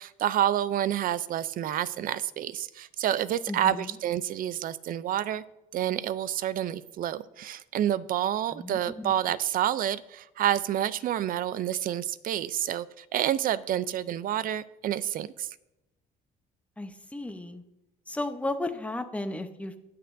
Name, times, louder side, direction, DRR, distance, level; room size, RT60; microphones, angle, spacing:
voice 1, 0.0-5.4 5.7-15.6, right 11 dB, 55° right, 16 dB, 0.5 m, -29 dB
voice 2, 3.5-4.0 8.5-9.1 16.8-17.6 18.1-19.8, left 2 dB, 10° left, 8 dB, 0.8 m, -34 dB
19.5 x 6.8 x 2.6 m, 0.92 s
cardioid pair, 110°, 17 cm